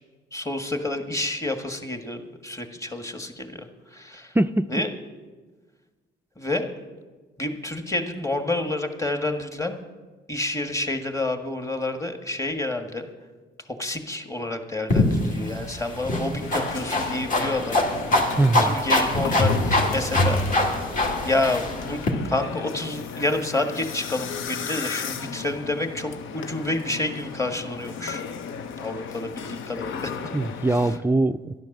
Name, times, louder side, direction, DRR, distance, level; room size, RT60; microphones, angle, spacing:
voice 1, 0.3-3.7 3.9-4.3 4.7-4.9 6.4-6.7 7.4-9.8 10.3-13.1 13.7-17.8 18.1-20.8 21.2-22.0 22.2-28.2 28.8-30.3 30.6-31.0, left 2 dB, 15° left, 6 dB, 1.6 m, -29 dB
voice 2, 4.3-4.7 18.4-18.8 30.3-31.5, right 2 dB, 10° right, 10 dB, 0.3 m, -22 dB
sound 1, 14.9-22.1, left 1 dB, 40° left, 2.2 m, -24 dB
sound 2, 16.4-31.0, left 7 dB, 80° left, 0.9 m, -35 dB
11.5 x 11.0 x 6.6 m, 1.3 s
cardioid pair, 90°, 20 cm